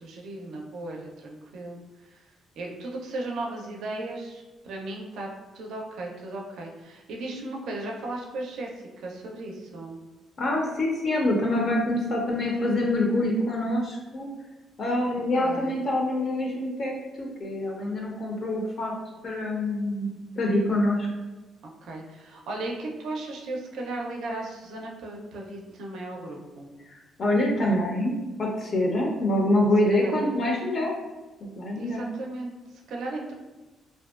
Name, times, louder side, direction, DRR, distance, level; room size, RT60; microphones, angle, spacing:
voice 1, 0.0-2.3 2.6-5.3 5.5-8.7 9.0-10.0 15.4-15.8 21.8-26.7 29.9-30.4 31.7-33.3, right 2 dB, 80° right, 0 dB, 0.4 m, -36 dB
voice 2, 10.4-14.3 14.8-16.9 17.2-18.9 19.2-21.1 27.2-30.9 31.6-32.1, left 1 dB, 50° left, -1 dB, 0.4 m, -25 dB
2.5 x 2.1 x 2.3 m, 1.1 s
cardioid pair, 90°, 0 cm